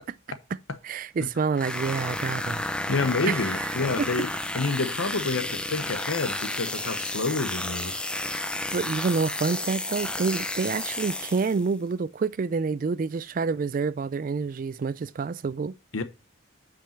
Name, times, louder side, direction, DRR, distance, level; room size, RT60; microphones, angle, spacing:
voice 1, 0.8-2.6 3.2-3.7 4.0-4.1 8.7-15.7, right 4 dB, 45° right, 0.3 m, -28 dB
sound 1, 1.5-11.7, left 1 dB, 5° left, 0.5 m, -32 dB
voice 2, 2.9-8.0 15.9-16.0, left 3 dB, 85° left, 1.1 m, -28 dB
8.8 x 5.3 x 4.4 m
head